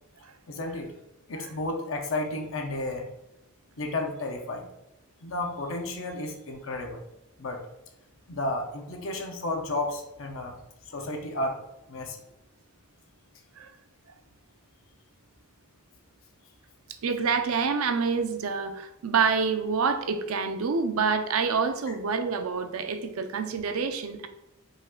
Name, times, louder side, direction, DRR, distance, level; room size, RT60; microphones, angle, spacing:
voice 1, 0.5-0.9 1.3-3.1 3.8-4.7 5.2-7.0 7.4-7.6 8.3-10.5 10.9-11.6 11.9-12.2 21.9-22.0, left 2 dB, 65° left, 3 dB, 0.7 m, -32 dB
voice 2, 17.0-24.3, right 5 dB, 80° right, 8 dB, 0.5 m, -27 dB
5.2 x 2.5 x 3.7 m, 0.91 s
head